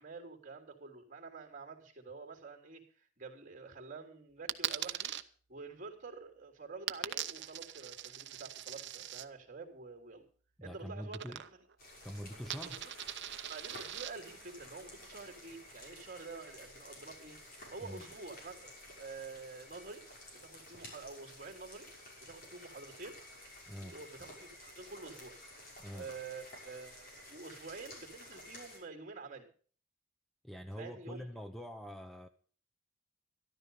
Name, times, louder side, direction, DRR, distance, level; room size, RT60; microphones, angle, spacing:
voice 1, 0.0-5.1 5.5-10.2 10.6-11.4 12.6-12.9 13.5-20.0 20.3-21.9 22.2-23.2 23.8-25.4 25.9-29.5 30.7-31.3, right 4 dB, 40° right, 3.3 m, -48 dB
Coin (dropping), 4.5-5.2 6.9-9.3 11.1-11.8 12.0-14.1, right 11 dB, 60° right, 0.8 m, -41 dB
voice 2, 10.6-11.4 12.0-12.8 17.8-18.1 23.7-24.0 25.8-26.1 30.4-32.3, equal, ahead, 0.7 m, -45 dB
sound 1, 11.8-28.8, left 1 dB, 50° left, 6.0 m, -53 dB
13.5 x 12.5 x 5.5 m
head